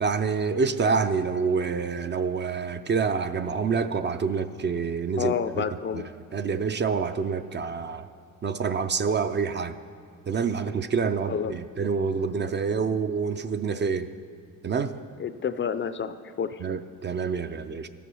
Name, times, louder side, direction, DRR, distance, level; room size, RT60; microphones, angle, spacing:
voice 1, 0.0-5.6 5.9-6.0 6.3-8.1 8.4-9.8 10.3-14.1 14.6-15.0 16.6-17.9, right 5 dB, 35° right, 10 dB, 0.4 m, -27 dB
voice 2, 5.2-6.0 11.3-11.5 15.2-16.6, left 7 dB, 35° left, 12 dB, 0.4 m, -29 dB
13.0 x 7.0 x 6.2 m, 2.3 s
cardioid pair, 115°, 34 cm